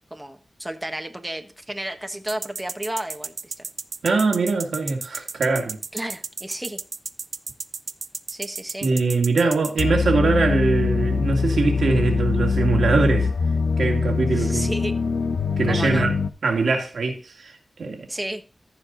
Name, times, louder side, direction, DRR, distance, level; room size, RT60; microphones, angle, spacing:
voice 1, 0.1-3.7 5.9-6.8 8.3-8.9 14.3-14.9 15.7-16.1 18.1-18.4, right 1 dB, 15° right, 1.3 m, -32 dB
sound 1, 2.3-9.8, right 4 dB, 70° right, 0.5 m, -32 dB
voice 2, 4.0-5.8 8.8-13.3 13.8-14.7 15.6-16.1 16.4-17.5 17.8-18.1, right 4 dB, 90° right, 2.1 m, -22 dB
sound 2, 9.8-16.3, left 5 dB, 90° left, 0.7 m, -23 dB
14.0 x 4.8 x 4.0 m
cardioid pair, 60°, 0 cm